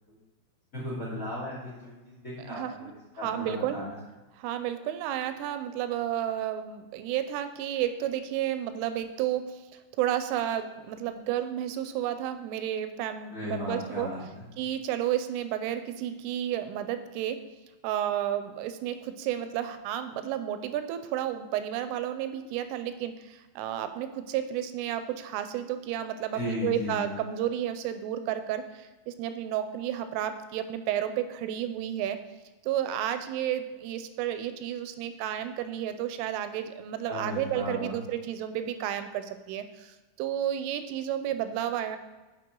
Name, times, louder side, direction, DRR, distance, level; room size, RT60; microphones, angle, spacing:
voice 1, 0.7-2.9 3.2-3.9 13.3-14.5 26.3-27.1 37.1-37.9, left 1 dB, 35° left, -5 dB, 1.4 m, -36 dB
voice 2, 2.5-2.9 3.2-3.8 4.4-14.1 14.6-17.4 17.8-32.2 32.6-42.0, right 11 dB, 85° right, 10 dB, 3.1 m, -32 dB
9.8 x 5.8 x 3.8 m, 1.2 s
omnidirectional pair, 5.8 m